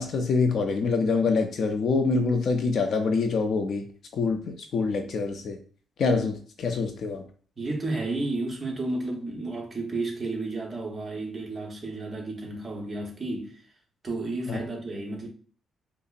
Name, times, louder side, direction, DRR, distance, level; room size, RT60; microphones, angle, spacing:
voice 1, 0.0-3.9 4.1-5.6 6.0-7.2 14.5-14.6, left 4 dB, 50° left, 0.4 m, -25 dB
voice 2, 7.6-13.6 14.0-15.3, right 2 dB, 20° right, 1.0 m, -32 dB
5.1 x 2.0 x 2.5 m
cardioid pair, 155°, 0 cm